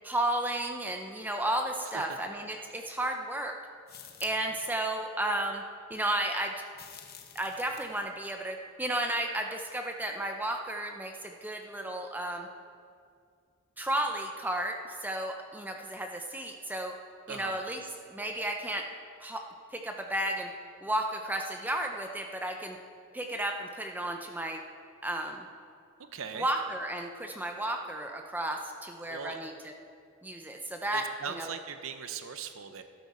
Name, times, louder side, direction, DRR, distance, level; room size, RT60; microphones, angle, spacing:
voice 1, 0.0-3.5 4.2-5.6 5.9-6.5 7.3-12.5 13.8-16.9 17.3-18.9 19.2-19.4 19.7-20.5 20.8-22.8 23.1-24.6 25.0-25.5 26.3-29.7 30.2-31.5, right 1 dB, 10° right, 3 dB, 0.6 m, -33 dB
sound 1, 3.9-4.6 6.7-8.1, left 9 dB, 45° left, 0.9 m, -49 dB
voice 2, 26.1-26.5 29.1-29.4 30.9-32.8, right 6 dB, 70° right, 8 dB, 0.6 m, -39 dB
12.0 x 12.0 x 4.3 m, 2.3 s
head